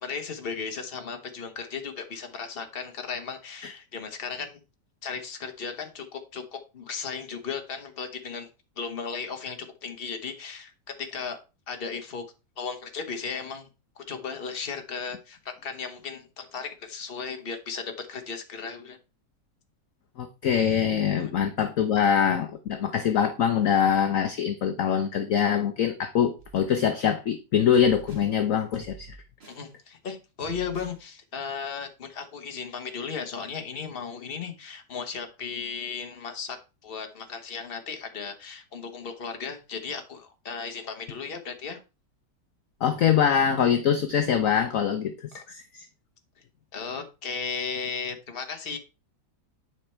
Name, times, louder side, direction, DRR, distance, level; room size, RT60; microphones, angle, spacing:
voice 1, 0.0-4.6 5.0-8.5 8.8-11.4 11.7-12.2 12.6-13.7 14.0-19.0 29.5-36.6 36.8-41.8 45.3-45.4 46.7-48.8, left 5 dB, 35° left, 1.3 m, -35 dB
voice 2, 20.2-29.1 42.8-45.9, left 8 dB, 55° left, 1.1 m, -24 dB
sound 1, 26.4-27.0 27.7-28.3 28.7-29.7 30.4-31.0, right 4 dB, 35° right, 1.9 m, -48 dB
9.7 x 5.0 x 4.4 m
omnidirectional pair, 1.8 m